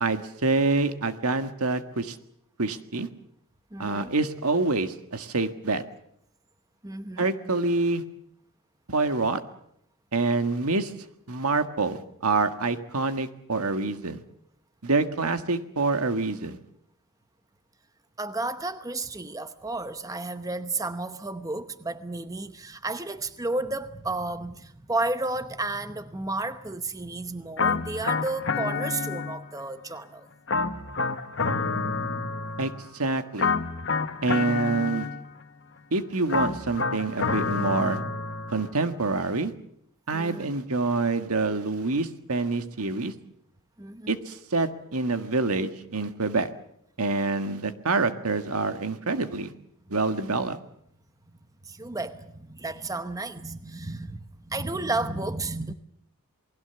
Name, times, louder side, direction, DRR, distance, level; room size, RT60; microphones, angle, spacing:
voice 1, 0.0-2.2 2.6-3.1 3.8-5.8 7.2-8.0 8.9-9.4 10.1-10.9 11.3-14.2 14.8-16.6 32.6-33.5 34.2-35.1 35.9-38.0 38.5-39.5 40.1-43.1 44.1-46.5 47.0-49.5 49.9-50.6, right 3 dB, 80° right, 1.7 m, -26 dB
voice 2, 3.7-4.1 6.8-7.2 18.2-30.3 40.1-40.5 43.8-44.1 51.6-55.7, right 2 dB, 15° right, 0.9 m, -32 dB
sound 1, 27.6-29.7 30.5-32.9 33.4-35.5 36.3-38.7, left 4 dB, 55° left, 1.4 m, -28 dB
28.0 x 20.5 x 7.0 m
head